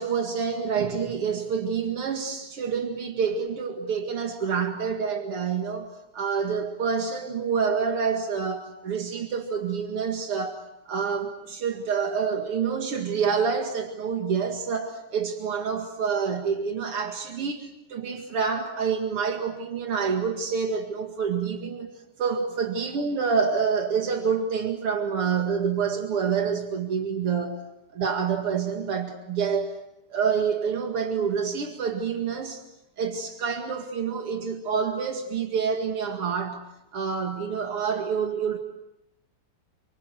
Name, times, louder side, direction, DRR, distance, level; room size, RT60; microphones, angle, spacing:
voice 1, 0.0-10.6 10.9-21.9 22.2-27.6 27.9-29.8 30.1-32.6 33.0-36.6 36.9-38.6, right 6 dB, 85° right, 3 dB, 3.0 m, -27 dB
29.0 x 26.5 x 7.8 m, 0.84 s
omnidirectional pair, 2.4 m